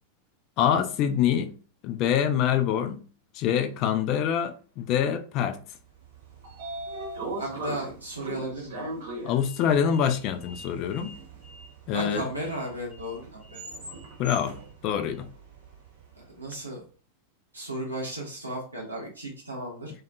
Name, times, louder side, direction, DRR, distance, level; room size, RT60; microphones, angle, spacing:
voice 1, 0.6-1.5 1.8-3.0 3.3-5.6 9.2-11.2 11.9-12.3 14.2-14.6 14.8-15.3, left 9 dB, 40° left, 0.3 m, -25 dB
Sliding door, 6.0-16.2, right 2 dB, 55° right, 0.9 m, -40 dB
voice 2, 7.4-8.8 11.9-13.6 16.2-16.8 17.5-19.9, right 1 dB, 85° right, 0.7 m, -35 dB
2.5 x 2.3 x 2.3 m
figure-of-eight pair, 90°, 0 cm